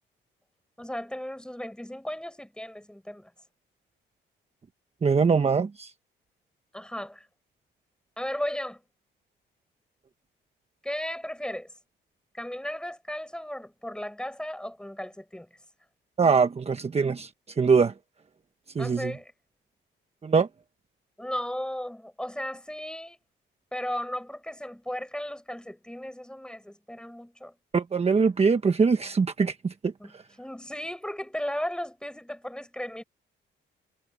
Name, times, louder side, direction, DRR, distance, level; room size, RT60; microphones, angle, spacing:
voice 1, 0.8-3.3 6.7-7.3 8.2-8.8 10.8-11.7 12.3-15.5 18.8-19.3 21.2-23.2 23.7-27.5 30.0-33.0, left 1 dB, 5° left, 7.6 m, -35 dB
voice 2, 5.0-5.9 16.2-17.3 17.6-17.9 18.7-19.1 20.2-20.5 27.7-29.9, right 5 dB, 30° right, 1.2 m, -23 dB
cardioid pair, 90°, 20 cm